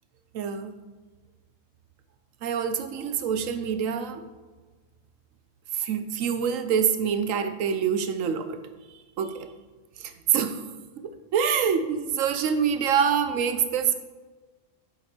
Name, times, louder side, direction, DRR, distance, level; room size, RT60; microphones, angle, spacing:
voice 1, 0.3-0.7 2.4-4.2 5.7-8.6 9.2-9.5 10.0-10.6 11.0-13.9, right 7 dB, 80° right, 10 dB, 1.1 m, -26 dB
9.2 x 7.4 x 4.3 m, 1.3 s
omnidirectional pair, 1.3 m